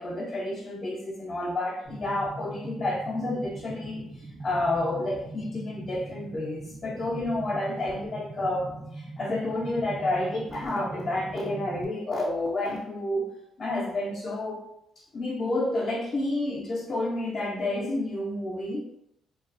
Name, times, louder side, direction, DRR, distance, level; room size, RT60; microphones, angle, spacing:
voice 1, 0.0-13.3 13.6-14.6 15.1-18.8, left 2 dB, 45° left, -4 dB, 0.5 m, -30 dB
sound 1, 1.9-11.9, right 2 dB, 30° right, 0.3 m, -41 dB
2.3 x 2.3 x 2.4 m, 0.81 s
cardioid pair, 90°, 0 cm